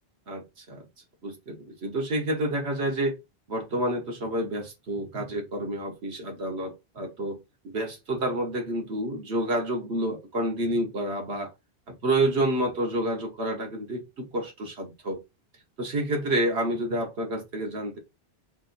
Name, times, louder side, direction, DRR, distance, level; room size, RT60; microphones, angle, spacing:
voice 1, 0.3-0.9 1.2-3.2 3.5-11.5 11.9-15.2 15.8-18.0, right 1 dB, 80° right, 1.5 m, -29 dB
4.1 x 3.5 x 2.6 m
omnidirectional pair, 1.1 m